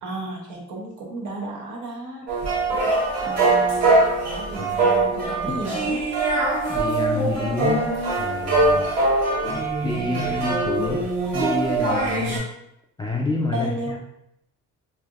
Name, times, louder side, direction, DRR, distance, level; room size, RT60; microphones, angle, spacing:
voice 1, 0.0-2.4 3.2-6.1 13.5-14.0, right 1 dB, 75° right, -1 dB, 0.9 m, -33 dB
sound 1, 2.3-12.4, right 2 dB, 55° right, 1.2 m, -22 dB
voice 2, 4.6-5.0 5.5-5.6 6.7-7.9 8.2-8.9 9.8-11.0 11.3-12.4 13.0-14.0, left 3 dB, 15° left, -1 dB, 0.4 m, -28 dB
3.4 x 2.6 x 2.4 m, 0.81 s
cardioid pair, 90°, 30 cm